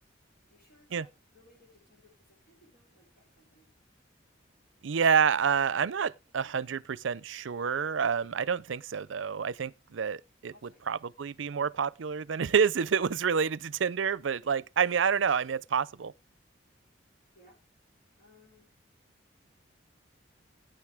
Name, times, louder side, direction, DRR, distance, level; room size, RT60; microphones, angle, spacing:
voice 1, 0.5-3.7 10.5-10.9 17.3-17.6 18.2-18.8, left 1 dB, 50° left, 6.5 m, -62 dB
voice 2, 4.8-10.5 10.9-16.1, right 6 dB, 85° right, 0.5 m, -28 dB
16.5 x 9.2 x 3.5 m
head